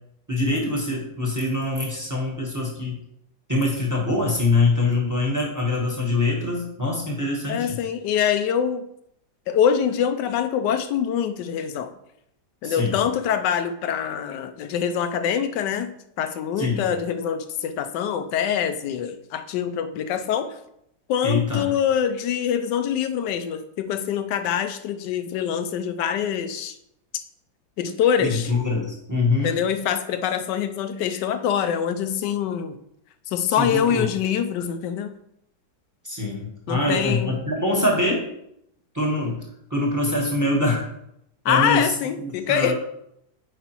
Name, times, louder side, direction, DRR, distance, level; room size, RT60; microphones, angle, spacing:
voice 1, 0.3-2.9 3.5-7.8 12.6-13.0 16.6-16.8 21.2-21.7 28.2-29.5 33.5-34.0 36.0-38.2 38.9-39.4 39.7-40.9 41.5-41.9 42.2-42.7, left 2 dB, 10° right, -2 dB, 1.0 m, -24 dB
voice 2, 7.5-8.9 9.5-11.9 12.6-20.6 21.1-26.8 27.8-28.5 29.4-32.8 33.3-35.1 36.7-37.4 41.4-42.7, left 8 dB, 75° left, 9 dB, 1.1 m, -24 dB
8.1 x 5.0 x 3.0 m, 0.77 s
omnidirectional pair, 2.1 m